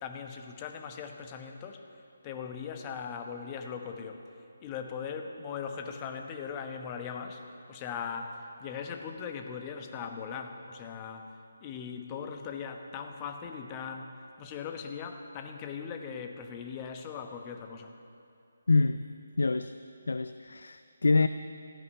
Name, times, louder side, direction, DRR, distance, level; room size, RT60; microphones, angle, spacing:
voice 1, 0.0-1.9 2.2-4.2 4.6-7.4 7.7-11.3 11.6-17.9, left 6 dB, 25° left, 5 dB, 1.1 m, -39 dB
voice 2, 18.7-19.1 19.4-19.8 20.1-21.3, left 3 dB, 70° left, 12 dB, 0.4 m, -26 dB
15.0 x 10.5 x 8.2 m, 2.5 s
figure-of-eight pair, 150°, 0 cm